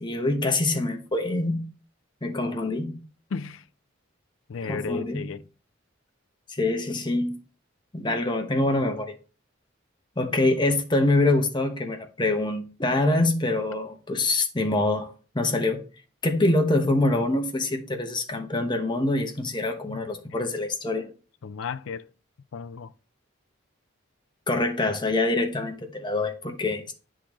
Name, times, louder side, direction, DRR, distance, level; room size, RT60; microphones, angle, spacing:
voice 1, 0.0-1.6 2.2-3.0 4.6-5.3 6.5-7.4 7.9-9.1 10.2-15.1 15.3-15.8 16.2-21.1 24.5-26.9, left 2 dB, 25° left, 0.9 m, -25 dB
voice 2, 3.3-3.6 4.5-5.4 19.8-20.1 21.4-22.1 22.5-22.9, left 5 dB, 75° left, 0.4 m, -34 dB
9.9 x 3.8 x 3.1 m
head